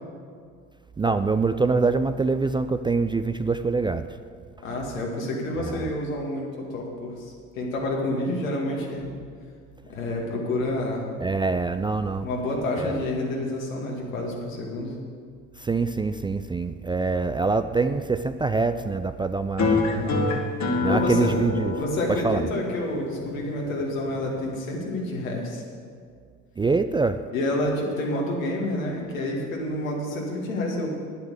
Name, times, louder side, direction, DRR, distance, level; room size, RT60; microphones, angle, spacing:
voice 1, 1.0-4.1 5.6-5.7 11.2-12.3 12.8-13.0 15.6-19.8 20.8-21.7 22.1-22.4 26.6-27.2, right 4 dB, 15° right, 10 dB, 0.3 m, -24 dB
voice 2, 4.6-9.1 9.9-11.1 12.2-14.9 19.9-20.2 20.9-21.3 21.8-25.6 27.3-30.9, left 1 dB, 80° left, -1 dB, 2.3 m, -29 dB
sound 1, 19.6-24.6, left 3 dB, 45° left, 1.7 m, -27 dB
10.0 x 8.2 x 8.0 m, 2.1 s
hypercardioid pair, 55°, 39 cm